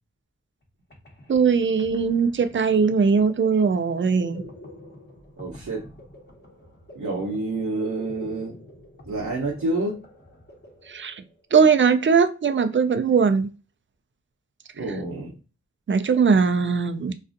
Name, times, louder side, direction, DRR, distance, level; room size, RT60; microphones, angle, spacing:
sound 1, 0.6-0.7 0.9-11.5, left 1 dB, 35° left, 1.0 m, -46 dB
voice 1, 1.3-4.4 10.9-11.2 11.5-13.5 15.9-17.1, right 5 dB, 45° right, 0.4 m, -20 dB
voice 2, 5.4-5.9 6.9-8.5 9.0-10.0 14.7-15.3, right 2 dB, 70° right, 0.8 m, -28 dB
2.5 x 2.3 x 2.5 m
cardioid pair, 45°, 29 cm